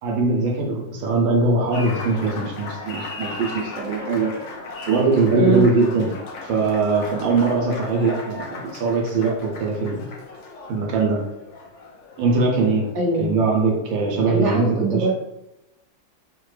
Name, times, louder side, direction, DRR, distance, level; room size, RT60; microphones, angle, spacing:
voice 1, 0.0-4.3 4.9-6.1 6.4-10.0 10.7-11.2 12.2-12.9 13.2-14.7 14.9-15.1, right 3 dB, 85° right, -1 dB, 1.5 m, -21 dB
Applause, 1.7-13.5, left 3 dB, 85° left, 0.6 m, -37 dB
voice 2, 5.3-5.7 12.9-13.3 14.3-15.1, right 2 dB, 45° right, -5 dB, 1.2 m, -21 dB
4.8 x 2.2 x 3.2 m, 0.90 s
omnidirectional pair, 2.1 m